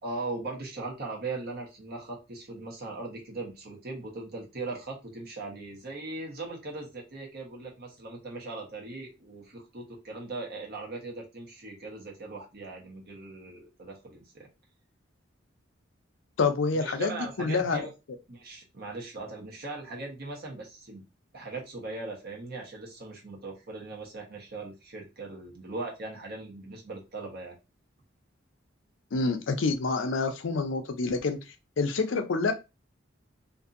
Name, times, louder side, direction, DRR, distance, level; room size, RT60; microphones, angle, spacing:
voice 1, 0.0-14.5 16.7-17.9 18.3-21.0 21.3-27.5, right 3 dB, 55° right, 0 dB, 1.0 m, -39 dB
voice 2, 16.4-17.8 29.1-31.4 31.8-32.5, left 4 dB, 70° left, 7 dB, 0.5 m, -27 dB
2.6 x 2.6 x 2.5 m, 0.26 s
head